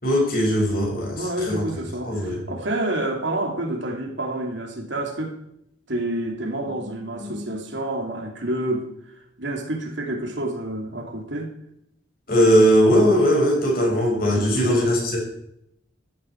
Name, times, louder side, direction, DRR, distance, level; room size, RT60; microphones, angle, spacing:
voice 1, 0.0-1.6 2.0-2.4 12.3-15.2, equal, 45° left, -1 dB, 6.7 m, -19 dB
voice 2, 1.0-5.3 5.9-8.9 9.4-11.5 14.3-14.7, right 1 dB, 70° right, 2 dB, 3.0 m, -28 dB
14.5 x 12.5 x 4.8 m, 0.75 s
head